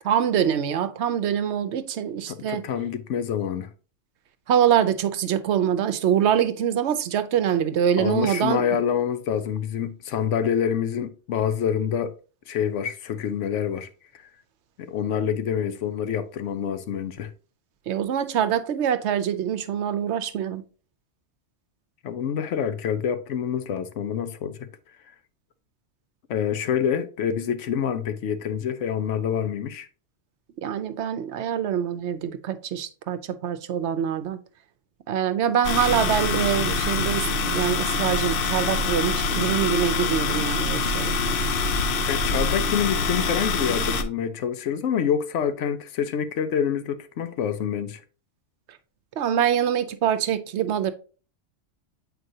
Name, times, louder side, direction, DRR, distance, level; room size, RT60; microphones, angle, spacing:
voice 1, 0.1-2.6 4.5-8.7 17.9-20.6 30.6-34.4 35.1-41.1 49.2-50.9, right 9 dB, 70° right, 0.9 m, -24 dB
voice 2, 2.3-3.7 8.0-12.1 12.5-13.9 14.8-17.3 22.0-24.7 26.3-29.9 42.1-48.0, left 8 dB, 80° left, 1.0 m, -27 dB
sound 1, 35.6-44.0, left 3 dB, 60° left, 0.7 m, -25 dB
7.7 x 4.6 x 2.7 m
omnidirectional pair, 1.2 m